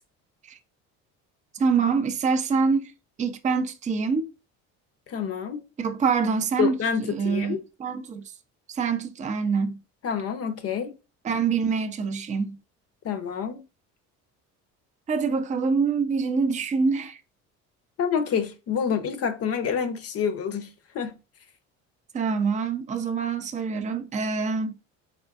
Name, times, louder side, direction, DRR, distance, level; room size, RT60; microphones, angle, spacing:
voice 1, 1.5-2.9 3.2-4.3 5.8-8.3 8.7-9.8 11.2-12.6 15.1-17.2 22.1-24.8, right 5 dB, 20° right, 0.4 m, -25 dB
voice 2, 5.1-5.6 6.6-7.6 10.0-10.9 13.0-13.6 18.0-21.1, left 7 dB, 45° left, 0.6 m, -27 dB
3.6 x 2.4 x 2.3 m
supercardioid pair, 90°, 33 cm